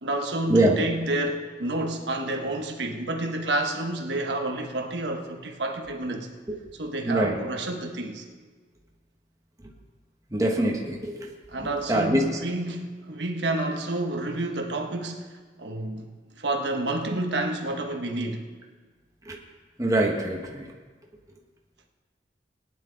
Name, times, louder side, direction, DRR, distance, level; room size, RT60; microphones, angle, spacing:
voice 1, 0.0-6.3 6.8-8.2 11.5-16.1 16.4-18.5, right 2 dB, 75° right, 3 dB, 1.2 m, -29 dB
voice 2, 7.0-7.4 10.3-11.3 11.6-12.3 19.2-19.4 19.8-20.7, right 1 dB, 20° right, 0 dB, 1.3 m, -24 dB
19.0 x 10.0 x 4.0 m, 1.4 s
head